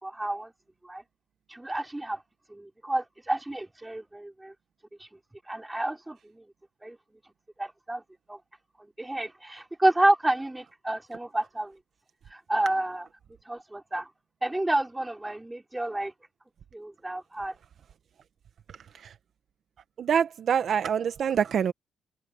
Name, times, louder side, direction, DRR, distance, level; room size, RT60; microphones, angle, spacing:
voice 1, 0.0-0.5 0.8-1.0 1.5-2.2 2.5-4.5 5.5-6.4 6.8-7.0 7.6-8.0 8.3-8.4 9.0-11.8 12.3-13.1 13.5-14.1 14.4-16.1 16.7-17.5, right 1 dB, 10° right, 3.4 m, -29 dB
voice 2, 20.0-21.7, right 8 dB, 60° right, 0.9 m, -25 dB
cardioid pair, 90°, 0 cm